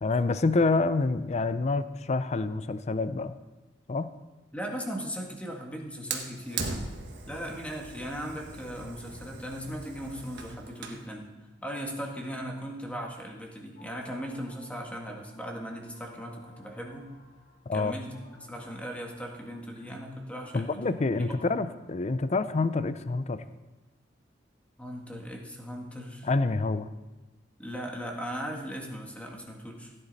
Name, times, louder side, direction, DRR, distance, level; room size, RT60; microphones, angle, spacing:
voice 1, 0.0-3.4 3.9-4.1 17.7-17.9 20.5-23.4 26.2-26.9, left 3 dB, 35° left, 13 dB, 0.5 m, -27 dB
voice 2, 4.5-6.8 7.3-11.3 11.6-17.1 17.7-21.3 24.8-26.3 27.6-29.9, equal, 5° left, 0 dB, 1.7 m, -38 dB
Fire, 6.1-11.1, right 4 dB, 65° right, 1.5 m, -39 dB
sound 1, 13.7-22.5, equal, 65° left, 5.3 m, -58 dB
15.5 x 10.0 x 4.1 m, 1.1 s
head